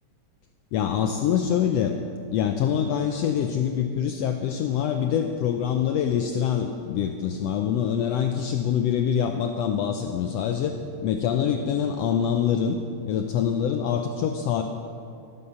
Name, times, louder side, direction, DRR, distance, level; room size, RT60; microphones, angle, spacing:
voice 1, 0.7-2.0 2.3-10.7 11.0-12.8 13.1-14.6, left 8 dB, 80° left, 5 dB, 1.5 m, -25 dB
12.5 x 9.4 x 6.9 m, 2.5 s
omnidirectional pair, 3.3 m